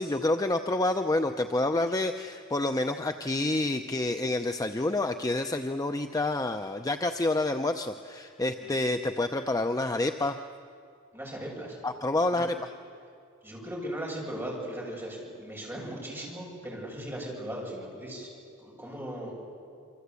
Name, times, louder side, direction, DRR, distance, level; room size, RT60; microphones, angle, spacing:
voice 1, 0.0-10.4 11.8-12.6, left 2 dB, 15° left, 6 dB, 0.6 m, -28 dB
voice 2, 11.1-11.8 12.3-12.5 13.4-18.3 18.6-19.3, right 1 dB, 10° right, -2 dB, 7.6 m, -38 dB
27.5 x 25.5 x 8.3 m, 2.4 s
head